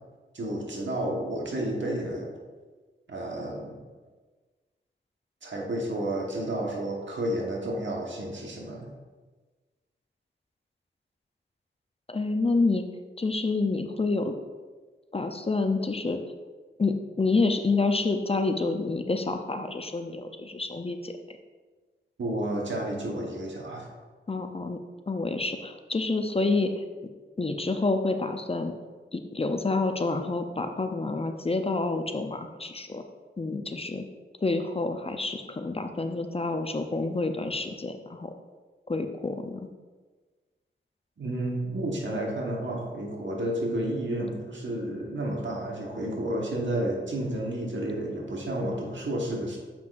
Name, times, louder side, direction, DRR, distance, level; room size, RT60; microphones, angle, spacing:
voice 1, 0.3-2.3 3.1-3.7 5.4-8.9 22.2-23.9 41.2-49.6, right 1 dB, 70° right, -1 dB, 1.4 m, -31 dB
voice 2, 12.1-12.9 13.2-14.3 15.1-16.2 16.8-21.1 24.3-24.8 25.1-26.8 27.4-28.7 29.1-33.0 33.4-34.0 34.4-38.3 38.9-39.6, left 3 dB, 30° left, 6 dB, 0.5 m, -28 dB
7.5 x 5.8 x 2.5 m, 1.3 s
cardioid pair, 60°, 20 cm